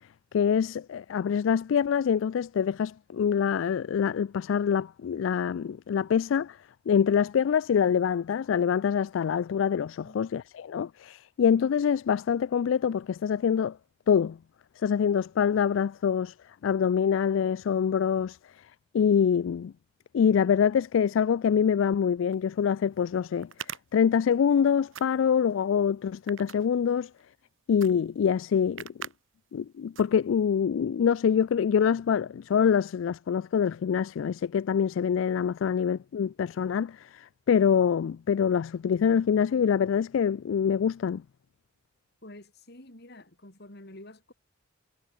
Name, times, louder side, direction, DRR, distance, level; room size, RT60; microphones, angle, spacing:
voice 1, 0.3-6.6 6.9-13.8 14.1-14.4 14.8-16.3 16.6-18.4 18.9-19.7 20.1-23.5 23.9-27.1 27.7-28.9 29.5-41.2, left 7 dB, 75° left, 0.3 m, -25 dB
sound 1, 22.3-22.4 23.4-24.6 24.9-25.5 26.1-27.2 27.8-27.9 28.2-28.3 28.8-29.2 29.5-29.7 30.0-30.5, right 8 dB, 80° right, 1.9 m, -41 dB
voice 2, 42.2-44.3, left 1 dB, 55° left, 4.1 m, -48 dB
head